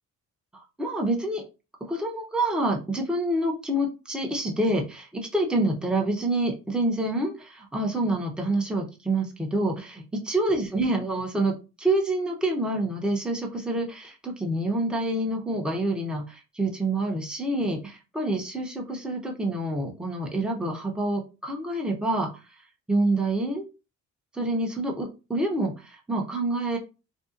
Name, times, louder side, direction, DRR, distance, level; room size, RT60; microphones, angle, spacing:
voice 1, 0.5-1.4 1.8-22.3 22.9-23.6 24.3-26.8, right 1 dB, 5° right, 0 dB, 0.7 m, -27 dB
2.6 x 2.3 x 2.5 m, 0.30 s
cardioid pair, 90°, 30 cm